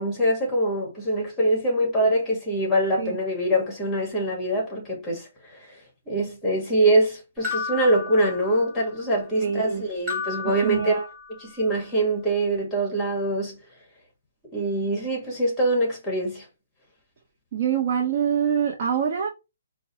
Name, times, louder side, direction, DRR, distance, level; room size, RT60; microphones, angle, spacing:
voice 1, 0.0-5.7 6.1-11.0 11.3-13.6 14.5-16.5, right 1 dB, 10° left, 1.6 m, -24 dB
sound 1, 7.4-8.9 10.1-11.5, left 5 dB, 15° right, 2.4 m, -33 dB
voice 2, 9.4-9.8 10.6-11.1 17.5-19.3, right 8 dB, 40° right, 0.8 m, -25 dB
4.6 x 2.2 x 3.0 m
hypercardioid pair, 155°, 0 cm